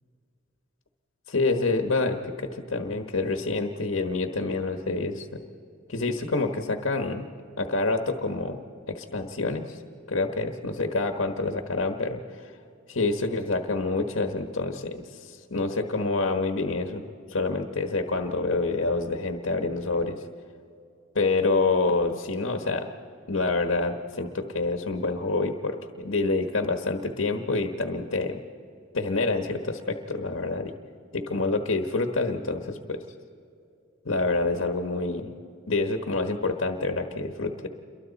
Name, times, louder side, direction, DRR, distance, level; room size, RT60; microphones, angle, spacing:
voice 1, 1.3-5.4 5.9-7.3 7.6-8.6 8.9-9.8 10.1-12.5 12.9-17.0 17.3-20.2 21.1-22.8 23.3-28.4 28.9-30.7 31.1-33.0 34.0-35.3 35.7-37.7, left 3 dB, 80° left, 4 dB, 1.4 m, -27 dB
29.0 x 23.0 x 4.2 m, 2.5 s
head